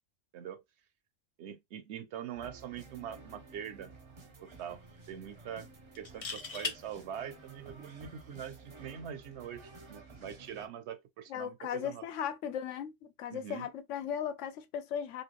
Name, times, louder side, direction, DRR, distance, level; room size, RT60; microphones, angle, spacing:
voice 1, 1.4-3.9 4.4-5.7 6.0-12.0 13.3-13.7, right 9 dB, 70° right, 0.8 m, -43 dB
sound 1, 2.3-10.7, right 3 dB, 35° right, 0.5 m, -53 dB
sound 2, 3.1-3.3 3.7-3.8 6.0-6.8 8.6-8.8, left 5 dB, 45° left, 0.5 m, -38 dB
voice 2, 11.3-12.9 13.2-15.2, left 8 dB, 80° left, 1.0 m, -37 dB
3.2 x 2.8 x 3.0 m
omnidirectional pair, 1.3 m